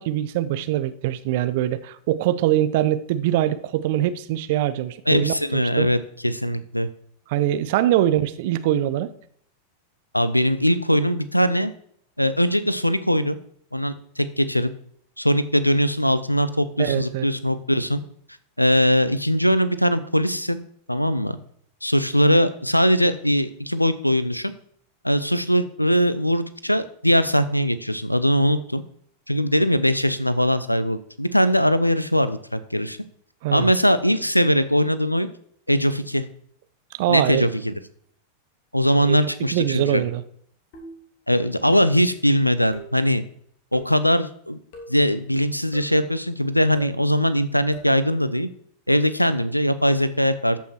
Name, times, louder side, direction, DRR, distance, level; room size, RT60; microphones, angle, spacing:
voice 1, 0.0-5.9 7.3-9.1 16.8-17.3 33.4-33.7 37.0-37.5 39.0-39.2 39.5-40.2, right 12 dB, 50° right, 13 dB, 0.8 m, -23 dB
voice 2, 5.1-6.9 10.1-11.7 12.2-13.4 13.7-14.7 15.2-18.0 18.6-20.6 20.9-21.4 21.8-24.5 25.0-28.8 29.3-33.0 33.5-35.3 35.7-36.2 37.1-37.7 38.7-40.0 41.3-43.2 43.7-44.6 44.9-48.5 48.9-50.6, equal, 90° left, 14 dB, 0.7 m, -21 dB
sound 1, 40.7-41.1 41.7-42.1 42.7-43.0 43.7-44.0 44.7-45.1 45.7-46.0 46.7-47.0 47.7-48.0, left 1 dB, 50° left, 2.8 m, -41 dB
13.5 x 5.7 x 4.4 m, 0.64 s
figure-of-eight pair, 90°, 0 cm